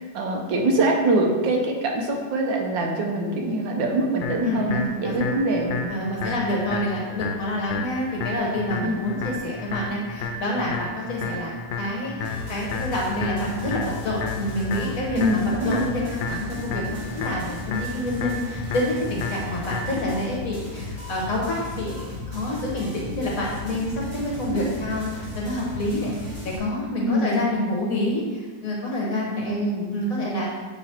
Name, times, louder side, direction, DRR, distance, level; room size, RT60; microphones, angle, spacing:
voice 1, 0.0-5.8 6.2-6.4 8.8-9.0 15.2-15.9 24.4-24.8 27.0-27.4 29.5-29.9, right 1 dB, 75° right, 1 dB, 1.5 m, -24 dB
sound 1, 4.2-20.2, left 4 dB, 80° left, 1.3 m, -32 dB
voice 2, 4.4-5.2 5.9-15.4 15.6-26.3 26.6-29.6 29.9-30.5, left 1 dB, 50° left, -3 dB, 1.3 m, -28 dB
sound 2, 12.2-26.6, left 3 dB, 30° right, 1.1 m, -35 dB
7.5 x 3.2 x 4.3 m, 1.3 s
omnidirectional pair, 2.1 m